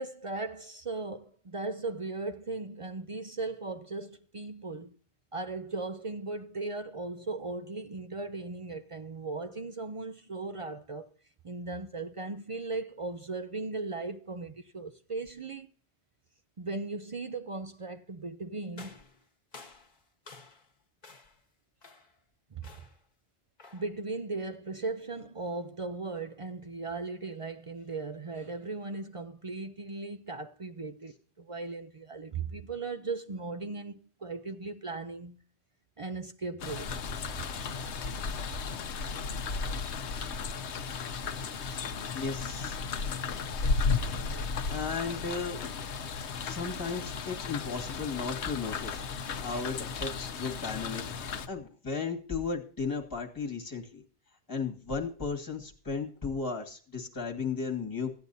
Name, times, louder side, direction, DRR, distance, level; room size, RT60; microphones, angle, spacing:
voice 1, 0.0-5.0 5.3-11.1 11.4-15.7 16.6-18.9 22.5-22.7 23.7-35.4 36.0-37.0, right 3 dB, 40° right, 0.5 m, -37 dB
sound 1, 18.7-20.7 21.0-21.4 21.8-22.2 22.6-23.1 23.6-24.0, left 3 dB, 40° left, 1.4 m, -52 dB
sound 2, 36.6-51.5, left 5 dB, 80° left, 1.1 m, -34 dB
voice 2, 42.1-42.8 44.7-45.6 46.4-51.0 51.5-54.0 54.5-58.1, left 4 dB, 20° left, 1.7 m, -35 dB
15.0 x 9.5 x 2.7 m
omnidirectional pair, 1.1 m